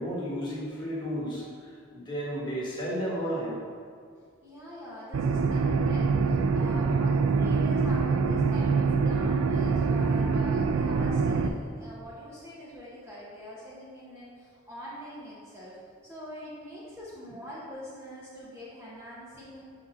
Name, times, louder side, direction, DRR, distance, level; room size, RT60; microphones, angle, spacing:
voice 1, 0.0-3.6, equal, 20° left, -7 dB, 1.5 m, -33 dB
voice 2, 4.4-15.8 16.0-19.6, equal, 10° right, -9 dB, 0.9 m, -43 dB
sound 1, 5.1-11.5, right 4 dB, 90° right, 0.4 m, -25 dB
4.6 x 4.1 x 5.6 m, 2.1 s
head